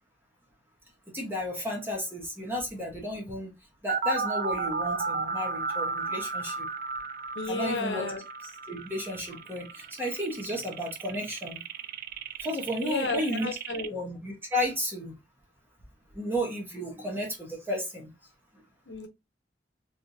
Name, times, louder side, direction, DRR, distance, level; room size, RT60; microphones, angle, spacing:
voice 1, 1.1-3.5 3.8-6.7 7.5-8.1 8.4-11.6 12.4-13.5 13.9-15.1 16.1-18.1, left 1 dB, 15° right, 1.1 m, -33 dB
sound 1, 3.9-13.9, right 4 dB, 55° right, 0.4 m, -34 dB
voice 2, 7.4-8.2 12.8-13.9 18.9-19.1, left 3 dB, 85° left, 0.9 m, -33 dB
3.5 x 3.2 x 2.6 m
head